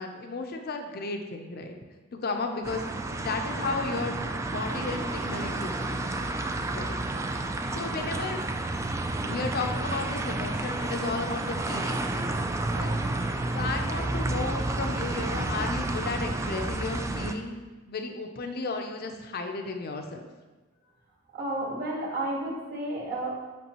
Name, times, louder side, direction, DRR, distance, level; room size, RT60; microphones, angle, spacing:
voice 1, 0.0-1.8 2.2-2.8 3.2-4.2 4.5-6.1 6.7-6.9 7.7-8.4 9.2-12.5 12.7-13.0 13.5-17.6 17.9-20.2, left 3 dB, 50° left, 4 dB, 0.6 m, -34 dB
sound 1, 2.6-17.3, right 2 dB, 15° right, 0.3 m, -30 dB
voice 2, 21.3-23.3, right 1 dB, 50° right, -3 dB, 1.8 m, -31 dB
8.3 x 5.0 x 3.0 m, 1.3 s
head